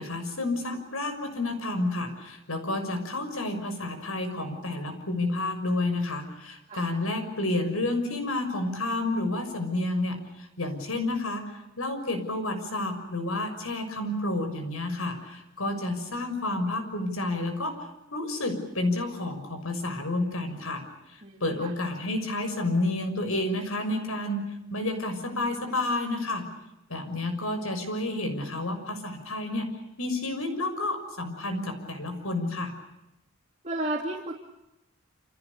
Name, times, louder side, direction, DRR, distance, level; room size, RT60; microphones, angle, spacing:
voice 1, 0.0-17.7 18.1-20.8 21.1-24.4 24.7-26.4 26.9-29.7 30.0-32.7, left 2 dB, 80° left, 7 dB, 6.4 m, -30 dB
voice 2, 21.2-21.7 33.6-34.3, right 1 dB, 35° right, -2 dB, 2.8 m, -33 dB
29.0 x 27.5 x 6.9 m, 0.94 s
head